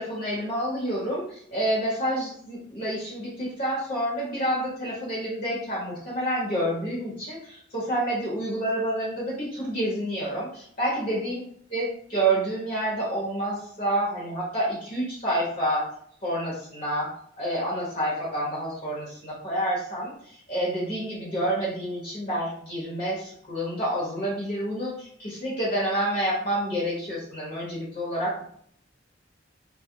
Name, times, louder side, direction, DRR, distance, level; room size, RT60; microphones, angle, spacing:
voice 1, 0.0-11.4 11.7-15.9 16.2-28.4, right 1 dB, 45° left, -7 dB, 0.9 m, -28 dB
2.3 x 2.1 x 2.7 m, 0.65 s
head